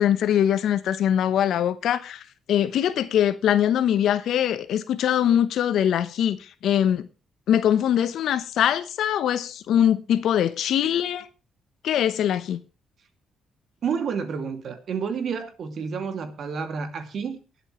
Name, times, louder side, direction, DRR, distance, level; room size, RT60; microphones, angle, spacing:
voice 1, 0.0-2.2 2.5-7.1 7.5-11.3 11.8-12.6, left 10 dB, 75° left, 1.0 m, -22 dB
voice 2, 13.8-17.4, right 6 dB, 60° right, 2.5 m, -30 dB
23.0 x 8.1 x 3.2 m
cardioid pair, 90°, 0 cm